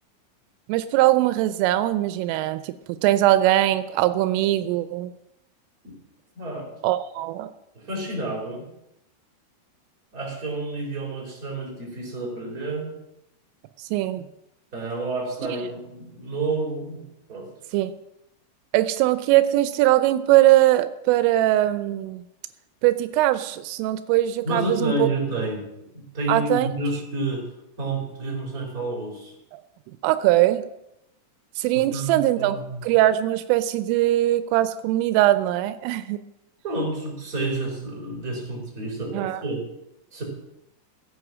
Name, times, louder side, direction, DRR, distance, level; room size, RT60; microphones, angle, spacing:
voice 1, 0.7-5.1 6.8-7.5 13.8-14.3 17.7-17.9 18.7-22.2 22.8-25.1 26.3-26.7 30.0-30.7 31.6-32.6 32.8-36.2 39.1-39.4, right 15 dB, 85° right, 11 dB, 3.2 m, -21 dB
voice 2, 6.3-6.7 7.7-8.7 10.1-12.9 14.7-17.0 17.3-17.5 24.4-25.6 25.9-27.4 27.8-29.3 31.9-32.8 36.6-39.6 40.1-40.2, right 2 dB, 20° right, -2 dB, 4.2 m, -29 dB
16.0 x 8.9 x 6.2 m, 0.85 s
omnidirectional pair, 5.7 m